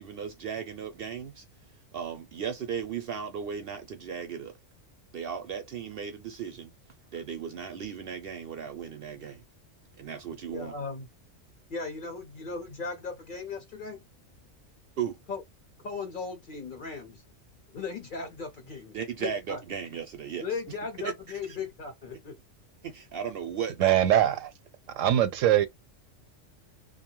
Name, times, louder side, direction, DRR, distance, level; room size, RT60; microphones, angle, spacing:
voice 1, 0.0-1.4 1.9-4.5 5.1-6.7 7.1-9.4 10.0-10.7 15.0-15.2 18.9-20.6 21.0-21.1 21.5-21.6 22.8-24.0, right 7 dB, 60° right, 0.6 m, -36 dB
voice 2, 10.5-11.1 11.7-14.0 15.3-15.4 15.8-17.2 17.7-19.6 20.4-22.4, left 4 dB, 50° left, 0.7 m, -37 dB
voice 3, 23.8-24.5 24.9-25.7, right 11 dB, 80° right, 1.0 m, -22 dB
2.7 x 2.3 x 3.0 m
omnidirectional pair, 1.3 m